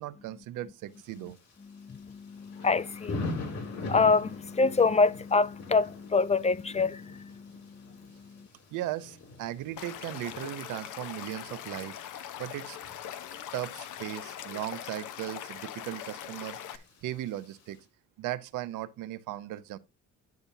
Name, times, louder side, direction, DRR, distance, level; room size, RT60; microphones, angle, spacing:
voice 1, 0.0-1.4 8.7-12.0 12.4-12.8 13.5-17.9 18.2-19.8, right 14 dB, 90° right, 0.7 m, -37 dB
Thunder / Rain, 0.9-17.8, left 2 dB, 70° left, 3.9 m, -44 dB
voice 2, 1.6-8.5, left 4 dB, 25° left, 0.4 m, -27 dB
Stream / Liquid, 9.8-16.8, left 10 dB, 85° left, 0.9 m, -41 dB
10.5 x 6.9 x 2.7 m
cardioid pair, 90°, 30 cm